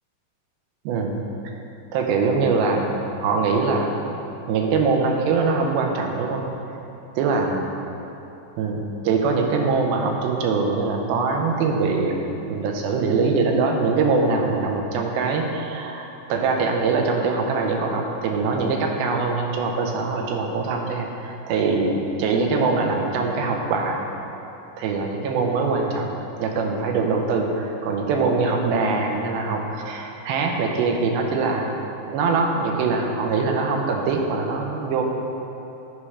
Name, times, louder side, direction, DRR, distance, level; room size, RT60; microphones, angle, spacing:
voice 1, 0.9-1.2 1.9-4.2 4.5-6.4 7.2-7.6 8.6-24.0 24.8-26.1 26.4-31.7 32.0-35.0, right 4 dB, 85° right, 2 dB, 2.6 m, -23 dB
11.0 x 4.9 x 3.2 m, 2.9 s
omnidirectional pair, 4.2 m